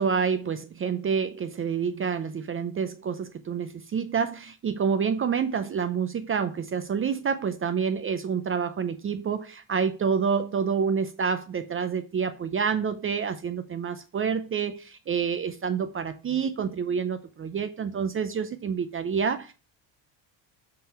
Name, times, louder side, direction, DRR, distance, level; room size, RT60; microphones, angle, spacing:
voice 1, 0.0-19.5, right 6 dB, 30° right, 0.6 m, -28 dB
7.4 x 3.8 x 4.3 m
cardioid pair, 125°, 45 cm